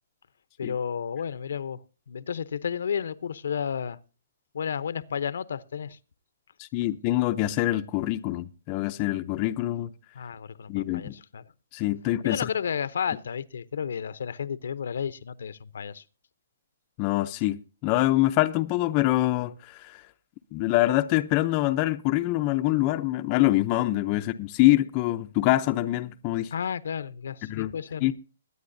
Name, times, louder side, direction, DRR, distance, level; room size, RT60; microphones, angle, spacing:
voice 1, 0.6-1.8 2.1-4.0 4.5-6.0 10.1-11.4 12.2-16.0 24.1-24.2 26.5-28.1, left 7 dB, 70° left, 0.7 m, -32 dB
voice 2, 6.6-9.9 10.7-11.2 11.7-12.4 17.0-20.0 20.5-26.5 27.4-27.7 28.0-28.1, left 16 dB, 25° left, 0.6 m, -25 dB
22.0 x 9.4 x 2.6 m
hypercardioid pair, 160°, 0 cm